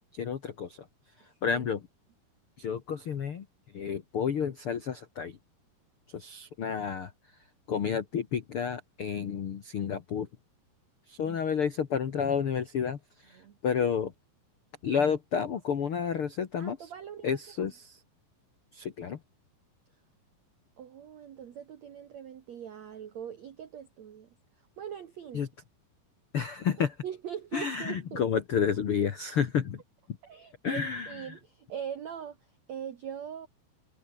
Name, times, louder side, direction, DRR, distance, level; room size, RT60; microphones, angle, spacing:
voice 1, 0.1-0.9 1.2-1.8 2.6-3.5 3.7-5.4 6.1-7.1 7.7-10.3 11.1-14.1 14.8-16.9 17.2-18.0 18.7-19.2 25.3-25.5 26.3-27.0 27.5-29.8 30.6-31.2, left 7 dB, 85° left, 1.2 m, -30 dB
voice 2, 16.6-17.4 20.8-24.4 24.8-25.4 27.0-28.2 30.2-33.5, right 8 dB, 55° right, 2.0 m, -42 dB
omnidirectional pair, 5.0 m